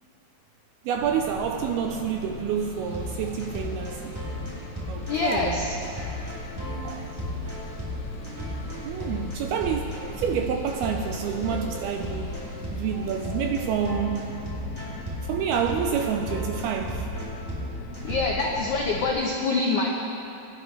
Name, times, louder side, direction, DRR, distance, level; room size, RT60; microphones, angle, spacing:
voice 1, 0.8-4.2 4.9-5.7 6.8-7.1 8.9-12.3 12.7-14.3 15.3-17.1, right 7 dB, 80° right, 4 dB, 2.3 m, -28 dB
sound 1, 0.9-19.2, left 1 dB, 55° left, 2.1 m, -39 dB
sound 2, 2.9-18.6, left 1 dB, 5° right, 3.2 m, -35 dB
voice 2, 5.1-5.7 18.0-19.9, left 3 dB, 85° left, -1 dB, 1.7 m, -25 dB
25.5 x 11.0 x 3.3 m, 2.8 s
omnidirectional pair, 5.0 m